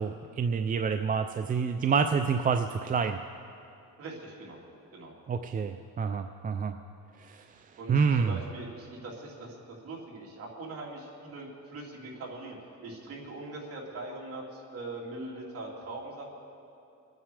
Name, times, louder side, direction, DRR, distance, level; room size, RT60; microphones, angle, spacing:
voice 1, 0.0-3.2 5.3-6.8 7.2-7.4 7.9-8.4, right 6 dB, 25° right, 7 dB, 0.4 m, -28 dB
voice 2, 4.0-4.6 4.9-5.1 7.8-12.6 12.8-16.3, right 2 dB, 45° right, -2 dB, 3.0 m, -41 dB
25.0 x 9.2 x 4.8 m, 2.8 s
cardioid pair, 140°, 32 cm